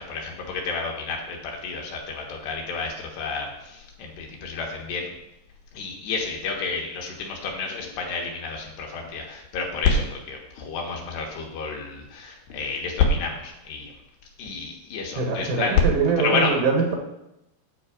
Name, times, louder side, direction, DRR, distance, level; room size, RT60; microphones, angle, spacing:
voice 1, 0.0-5.1 5.7-13.9 14.4-15.9 16.2-16.6, left 4 dB, 65° left, 0 dB, 3.3 m, -28 dB
voice 2, 15.2-17.0, right 4 dB, 80° right, 2 dB, 3.8 m, -23 dB
9.8 x 4.4 x 7.5 m, 0.86 s
omnidirectional pair, 5.5 m